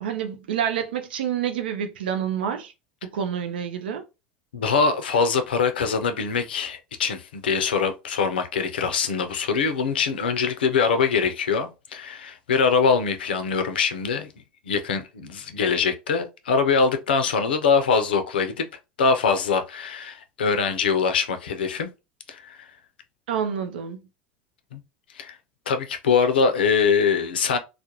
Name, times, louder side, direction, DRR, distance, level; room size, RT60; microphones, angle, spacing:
voice 1, 0.0-2.7 3.1-4.0 23.3-24.0, right 8 dB, 80° right, 0.5 m, -28 dB
voice 2, 4.5-14.3 14.7-18.7 19.0-21.9 22.3-22.7 24.7-24.8 25.1-25.4 25.7-27.6, left 5 dB, 85° left, 0.4 m, -23 dB
2.3 x 2.0 x 2.8 m
hypercardioid pair, 80°, 5 cm